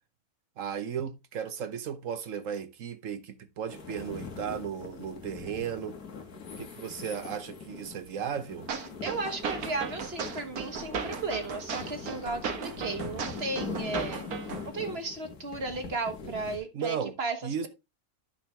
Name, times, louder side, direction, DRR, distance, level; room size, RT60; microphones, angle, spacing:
voice 1, 0.6-6.0 6.6-8.7 16.7-17.1 17.4-17.7, right 7 dB, 65° right, 1.1 m, -35 dB
sound 1, 3.7-16.6, left 5 dB, 80° left, 2.0 m, -42 dB
sound 2, 8.7-14.7, right 6 dB, 80° right, 1.7 m, -36 dB
voice 2, 9.0-14.2 14.7-17.7, right 3 dB, 45° right, 1.5 m, -35 dB
10.0 x 6.2 x 3.3 m
omnidirectional pair, 1.5 m